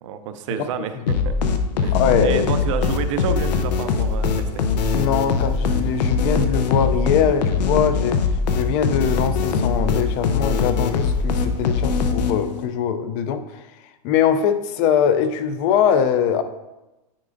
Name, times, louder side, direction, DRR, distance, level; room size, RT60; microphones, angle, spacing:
voice 1, 0.0-1.4 1.8-4.6, right 7 dB, 50° right, 10 dB, 0.6 m, -29 dB
sound 1, 1.1-12.7, left 5 dB, 90° left, 0.7 m, -22 dB
voice 2, 1.9-2.5 4.9-8.2 8.5-13.6 14.0-16.4, left 8 dB, 30° left, 10 dB, 0.4 m, -22 dB
9.6 x 4.7 x 2.5 m, 1.0 s
supercardioid pair, 160°, 21 cm